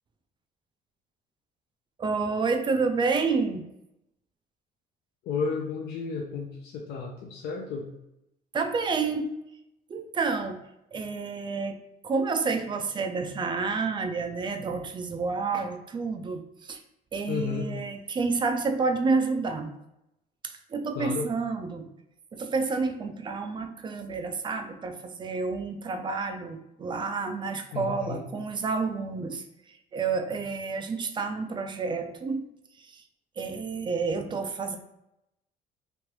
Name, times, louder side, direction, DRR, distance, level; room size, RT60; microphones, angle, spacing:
voice 1, 2.0-3.7 8.5-9.4 9.9-11.8 12.0-16.8 17.1-19.7 20.4-21.9 22.3-32.5 32.8-33.0 33.4-34.8, right 4 dB, 30° right, 6 dB, 0.4 m, -29 dB
voice 2, 5.2-7.8 17.3-17.7 21.0-21.3 27.7-28.2, left 5 dB, 70° left, -1 dB, 0.5 m, -32 dB
3.1 x 2.4 x 3.0 m, 0.87 s
cardioid pair, 110°, 17 cm